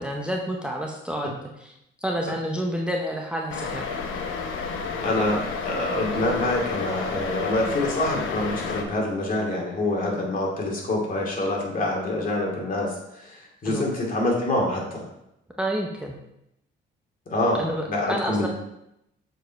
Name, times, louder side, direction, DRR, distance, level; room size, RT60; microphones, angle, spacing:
voice 1, 0.0-1.7 2.0-3.9 13.6-13.9 15.6-16.2 17.6-18.5, equal, 5° right, 0 dB, 0.8 m, -29 dB
sound 1, 3.5-8.8, left 5 dB, 80° left, 0.9 m, -31 dB
voice 2, 5.0-15.0 17.3-18.5, left 1 dB, 45° left, -2 dB, 2.4 m, -26 dB
7.1 x 4.6 x 4.5 m, 0.83 s
cardioid pair, 90°, 20 cm